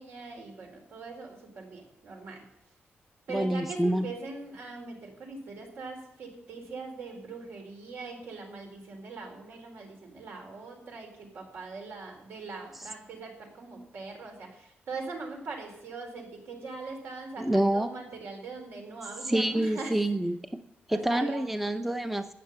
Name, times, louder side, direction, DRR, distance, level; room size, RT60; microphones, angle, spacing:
voice 1, 0.0-2.4 3.3-20.0 20.9-21.6, right 4 dB, 75° right, 2 dB, 4.3 m, -41 dB
voice 2, 3.3-4.1 17.4-17.9 19.3-20.4 20.9-22.3, right 1 dB, 5° right, 8 dB, 0.6 m, -27 dB
13.0 x 8.9 x 9.3 m, 0.81 s
wide cardioid pair, 170°, 4 cm